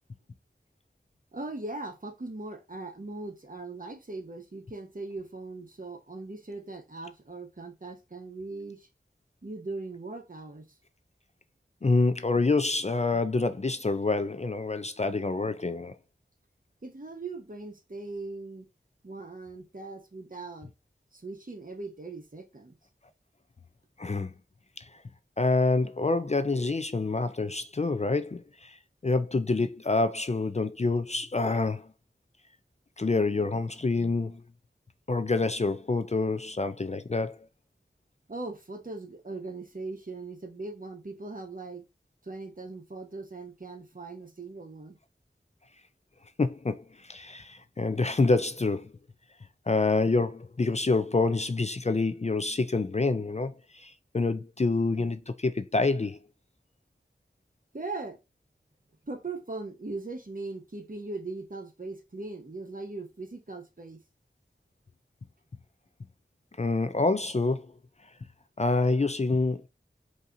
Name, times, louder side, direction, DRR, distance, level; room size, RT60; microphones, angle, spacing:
voice 1, 1.3-8.9 9.4-10.8 16.8-18.7 19.0-20.7 21.1-22.7 38.3-41.8 42.2-45.0 57.7-58.2 59.1-64.0, right 3 dB, 45° right, 1.0 m, -39 dB
voice 2, 11.8-15.9 24.0-24.3 24.8-24.9 25.4-28.8 29.0-31.9 33.0-34.4 35.1-37.4 46.4-48.9 49.7-56.2 66.6-67.7 68.6-69.7, left 3 dB, 35° left, 0.4 m, -27 dB
5.4 x 2.7 x 2.5 m
wide cardioid pair, 50°, 20 cm